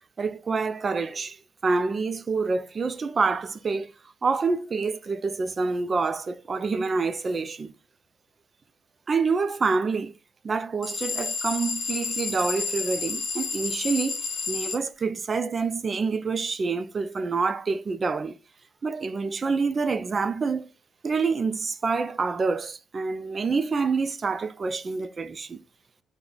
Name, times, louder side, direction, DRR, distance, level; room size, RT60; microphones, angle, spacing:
voice 1, 0.2-1.4 1.6-3.9 4.2-7.7 9.1-10.1 10.4-18.4 18.8-20.7 21.0-25.6, right 4 dB, 35° right, 0.3 m, -27 dB
sound 1, 10.8-14.8, left 5 dB, 60° left, 1.0 m, -30 dB
2.3 x 2.1 x 3.6 m
cardioid pair, 90°, 0 cm